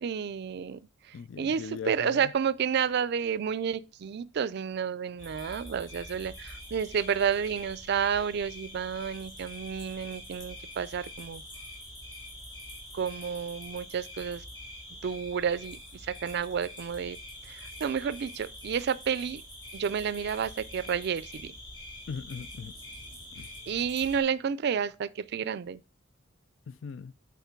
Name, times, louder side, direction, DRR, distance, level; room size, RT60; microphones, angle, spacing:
voice 1, 0.0-0.8 1.4-11.4 12.9-14.4 15.0-17.2 17.5-19.4 19.7-21.5 23.7-25.8, right 7 dB, 60° right, 0.4 m, -30 dB
voice 2, 1.1-2.3 22.1-22.7 23.3-23.5 26.7-27.1, left 6 dB, 70° left, 0.4 m, -40 dB
sound 1, 5.2-24.2, left 1 dB, 25° left, 3.0 m, -45 dB
8.1 x 4.2 x 4.5 m
head